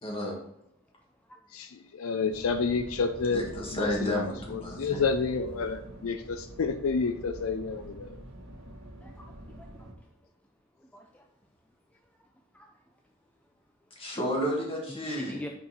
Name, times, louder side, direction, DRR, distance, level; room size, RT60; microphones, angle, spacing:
voice 1, 0.0-0.3 3.3-5.0 14.0-15.4, equal, 25° left, -2 dB, 1.8 m, -31 dB
voice 2, 1.5-3.4 3.7-4.1 4.5-8.1, left 4 dB, 75° left, 9 dB, 0.5 m, -29 dB
sound 1, 2.3-9.9, equal, 75° right, 1.5 m, -45 dB
voice 3, 9.0-9.9 10.8-11.2 12.5-12.7 14.9-15.5, equal, 5° left, 2 dB, 0.4 m, -43 dB
6.1 x 4.4 x 4.1 m, 0.77 s
head